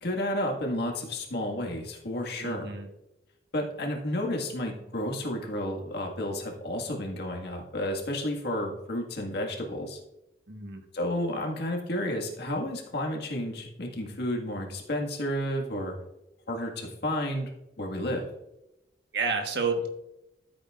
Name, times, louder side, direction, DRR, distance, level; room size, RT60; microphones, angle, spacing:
voice 1, 0.0-2.7 3.5-10.0 10.9-15.9 16.5-17.5 17.8-18.3, left 1 dB, 65° left, 1 dB, 1.8 m, -31 dB
voice 2, 2.4-2.9 10.5-10.8 19.1-19.9, right 4 dB, 65° right, 4 dB, 1.4 m, -30 dB
14.0 x 8.1 x 2.5 m, 0.91 s
head